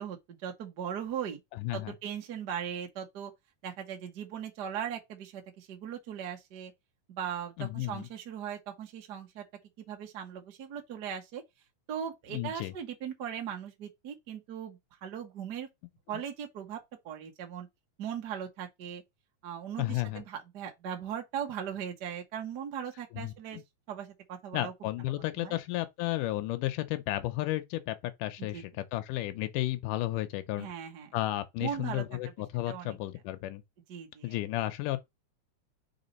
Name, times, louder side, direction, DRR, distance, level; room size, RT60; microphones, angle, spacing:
voice 1, 0.0-1.4 1.7-3.3 3.6-6.7 7.1-9.4 9.9-11.4 11.9-15.7 16.1-16.8 17.0-17.7 18.0-19.0 19.4-23.6 23.9-24.7 25.1-25.6 28.5-28.6 30.6-31.1 31.6-32.0 32.7-32.9 33.9-34.4, right 8 dB, 55° right, 1.1 m, -39 dB
voice 2, 1.5-2.0 7.6-8.1 12.3-12.7 19.8-20.2 23.1-23.6 24.5-30.7 31.1-33.6 34.2-35.0, left 16 dB, 85° left, 2.3 m, -33 dB
4.8 x 3.9 x 5.3 m
omnidirectional pair, 3.6 m